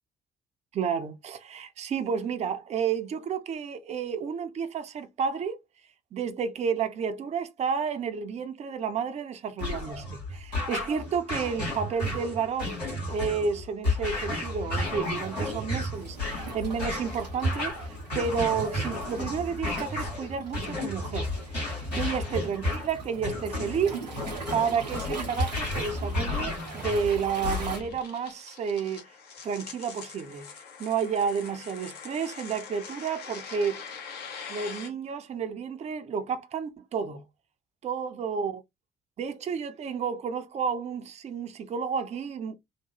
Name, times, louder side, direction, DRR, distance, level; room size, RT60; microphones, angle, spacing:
voice 1, 0.7-5.6 6.1-24.2 24.5-29.0 29.4-30.5 30.8-33.8 34.5-37.2 37.8-38.6 39.2-42.6, right 6 dB, 35° right, 0.5 m, -31 dB
sound 1, 9.6-28.0, left 1 dB, 85° left, 1.4 m, -32 dB
Waves surf, 15.9-27.8, right 3 dB, 90° right, 0.6 m, -42 dB
sound 2, 24.4-34.9, left 6 dB, 50° left, 0.8 m, -44 dB
2.8 x 2.1 x 3.1 m
figure-of-eight pair, 45°, 21 cm